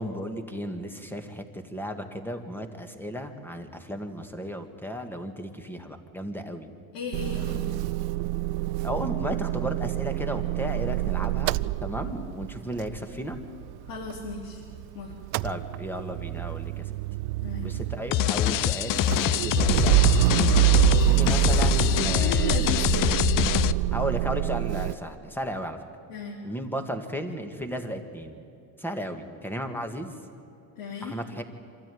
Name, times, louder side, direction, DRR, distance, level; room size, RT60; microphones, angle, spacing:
voice 1, 0.0-6.7 8.8-13.4 15.4-17.0 17.6-20.3 20.9-22.6 23.9-25.8 26.4-28.4 28.8-30.1 31.0-31.4, equal, 5° left, 6 dB, 1.8 m, -34 dB
voice 2, 6.9-7.8 13.9-14.6 14.9-15.1 17.4-17.7 20.8-21.2 22.1-23.2 26.1-26.4 30.8-31.1, left 5 dB, 80° left, -3 dB, 3.5 m, -35 dB
Motor vehicle (road) / Engine starting / Idling, 7.1-14.8 15.1-24.9, right 17 dB, 60° right, 0.5 m, -26 dB
sound 1, 18.1-23.7, left 13 dB, 50° left, 0.6 m, -24 dB
25.5 x 13.5 x 9.4 m, 2.7 s
cardioid pair, 120°, 43 cm